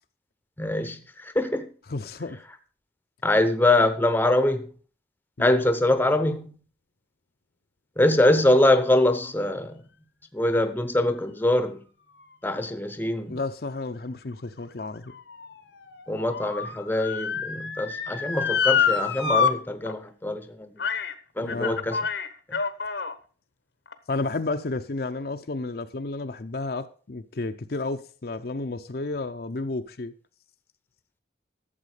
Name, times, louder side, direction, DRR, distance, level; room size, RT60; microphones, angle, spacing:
voice 1, 0.6-1.0 1.3-1.7 3.2-4.7 5.4-6.5 8.0-9.8 10.3-11.8 12.4-13.4 16.1-20.7 21.4-22.0, left 1 dB, 10° left, 0.7 m, -23 dB
voice 2, 1.9-2.4 5.4-5.6 13.3-15.1 21.4-21.8 24.1-30.1, left 3 dB, 55° left, 0.6 m, -32 dB
Motor vehicle (road) / Siren, 14.3-19.5 19.9-20.0 20.8-21.1 21.5-23.1 23.9-24.0, left 6 dB, 75° left, 1.0 m, -27 dB
12.5 x 7.4 x 4.9 m
head